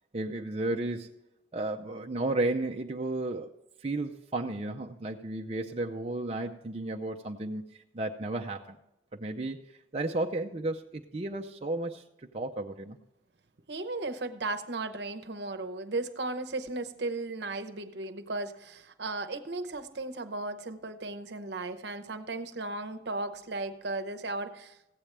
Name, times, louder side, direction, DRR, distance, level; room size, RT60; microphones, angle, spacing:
voice 1, 0.1-1.1 1.5-3.5 3.8-8.8 9.1-9.6 9.9-12.0 12.3-13.0, right 2 dB, 35° right, 1 dB, 0.5 m, -33 dB
voice 2, 13.7-24.8, right 2 dB, 65° right, 10 dB, 0.9 m, -36 dB
15.5 x 8.7 x 3.4 m, 0.87 s
head